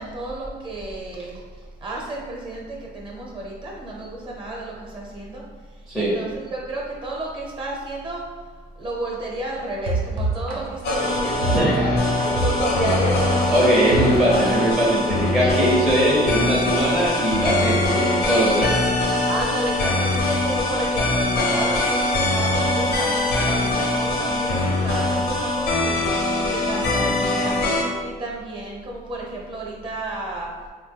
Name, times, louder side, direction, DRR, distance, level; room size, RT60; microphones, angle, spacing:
voice 1, 0.0-5.4 5.9-8.2 8.8-13.6 14.2-14.6 15.4-15.8 19.3-26.1 26.5-27.6 28.0-30.5, right 2 dB, 30° right, -2 dB, 0.8 m, -32 dB
sound 1, 9.9-14.8, right 3 dB, 65° right, 0.7 m, -27 dB
sound 2, 10.8-27.8, left 2 dB, 75° left, 0.7 m, -22 dB
voice 2, 11.3-12.0 13.5-18.8, equal, ahead, -6 dB, 0.6 m, -20 dB
3.0 x 2.1 x 3.3 m, 1.5 s
cardioid pair, 110°, 17 cm